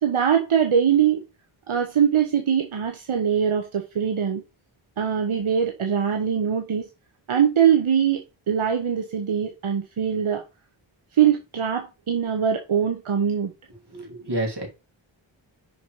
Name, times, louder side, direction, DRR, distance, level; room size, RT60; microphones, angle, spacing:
voice 1, 0.0-1.2 1.7-4.4 5.0-6.9 7.3-10.4 11.1-13.5, right 8 dB, 85° right, 0.9 m, -22 dB
voice 2, 13.9-14.7, right 1 dB, 55° right, 3.1 m, -29 dB
5.8 x 4.5 x 4.6 m
wide cardioid pair, 65°, 47 cm